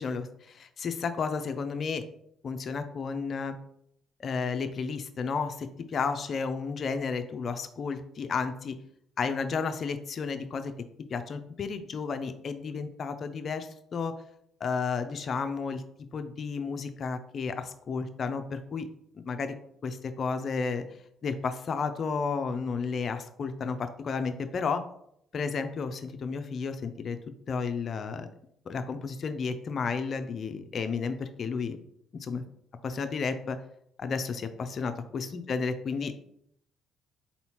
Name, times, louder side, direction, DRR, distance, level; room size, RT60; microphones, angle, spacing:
voice 1, 0.0-2.0 2.4-3.6 4.2-8.8 9.2-10.7 11.1-14.1 14.6-15.8 16.1-18.9 19.1-19.6 19.8-20.8 21.2-24.8 25.3-27.2 27.5-28.2 28.7-31.8 32.2-32.4 32.8-33.6 34.0-36.1, left 5 dB, 50° left, 8 dB, 0.5 m, -32 dB
4.1 x 3.8 x 3.0 m, 0.72 s
supercardioid pair, 65°, 0 cm